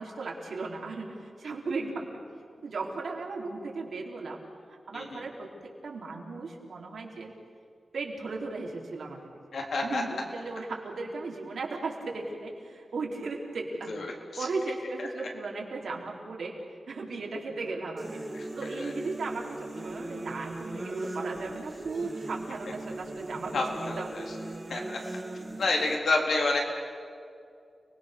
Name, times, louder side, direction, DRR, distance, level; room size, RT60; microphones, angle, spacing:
voice 1, 0.0-2.2 2.6-4.4 4.7-7.3 7.9-9.2 9.8-16.6 16.9-18.2 18.6-24.2, right 3 dB, 85° right, -1 dB, 4.2 m, -36 dB
voice 2, 9.5-10.0 13.9-14.1 14.3-14.5 18.8-18.9 23.5-23.7 23.9-24.2 24.7-25.0 25.6-26.6, left 3 dB, 90° left, 0 dB, 3.9 m, -28 dB
sound 1, 18.0-26.0, right 2 dB, 25° right, 2.2 m, -39 dB
30.0 x 21.0 x 6.8 m, 2.3 s
wide cardioid pair, 160°, 0 cm